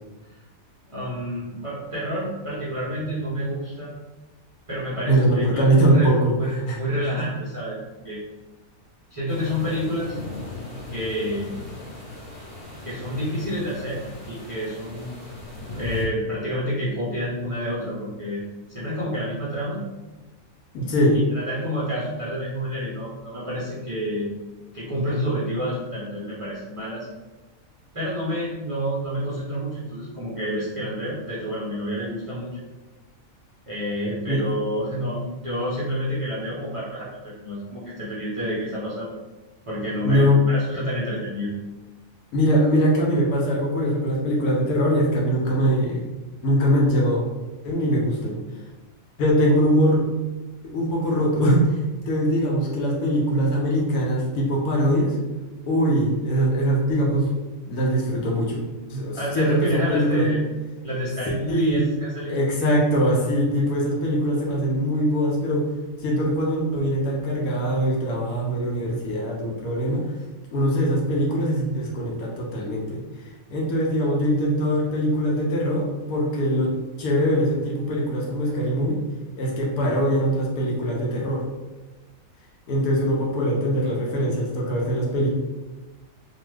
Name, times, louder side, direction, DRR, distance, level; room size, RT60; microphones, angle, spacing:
voice 1, 0.9-3.9 4.7-7.8 8.0-8.2 9.1-10.1 10.9-11.5 12.8-15.1 15.7-18.4 18.7-19.8 21.1-24.3 24.7-27.1 27.9-32.5 33.7-39.2 39.7-41.5 59.1-60.4 60.8-62.4, equal, 45° right, -8 dB, 0.4 m, -29 dB
voice 2, 5.1-6.8 7.1-7.3 20.7-21.2 34.3-34.4 40.0-40.4 42.3-46.0 46.4-47.2 47.6-48.4 49.2-50.1 50.6-51.8 52.1-55.2 55.7-57.3 57.7-58.6 58.9-60.3 61.5-61.9 62.3-65.7 66.0-70.1 70.5-73.0 73.5-79.0 79.4-81.4 82.7-85.3, equal, 85° left, -3 dB, 1.1 m, -22 dB
sound 1, 9.3-16.0, left 2 dB, 40° left, 0.5 m, -37 dB
2.9 x 2.2 x 3.2 m, 1.1 s
omnidirectional pair, 1.5 m